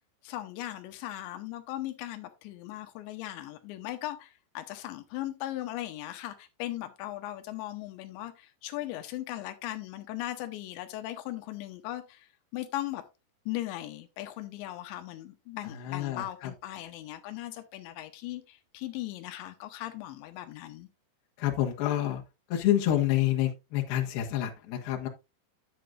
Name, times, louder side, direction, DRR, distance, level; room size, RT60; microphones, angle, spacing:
voice 1, 0.2-13.0 13.5-20.9, left 15 dB, 90° left, 3.1 m, -38 dB
voice 2, 15.6-16.5 21.4-22.2 22.5-25.1, left 12 dB, 70° left, 3.2 m, -28 dB
11.0 x 7.7 x 2.5 m
omnidirectional pair, 5.0 m